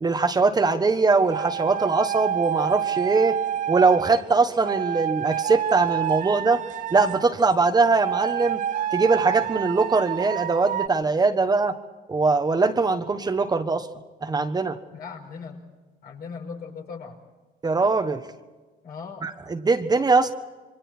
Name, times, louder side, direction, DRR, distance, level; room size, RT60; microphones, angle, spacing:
voice 1, 0.0-3.4 3.7-6.6 6.9-8.6 8.9-11.8 12.1-13.9 14.2-14.8 17.6-18.2 19.2-20.3, right 4 dB, 25° right, 7 dB, 1.3 m, -21 dB
sound 1, 1.3-4.2 4.6-7.3 8.0-10.9, right 10 dB, 50° right, 0.6 m, -28 dB
voice 2, 14.9-15.6 16.0-17.2 18.8-19.3, left 5 dB, 65° left, 2 dB, 5.5 m, -38 dB
28.0 x 24.0 x 4.4 m, 1.2 s
cardioid pair, 110°, 17 cm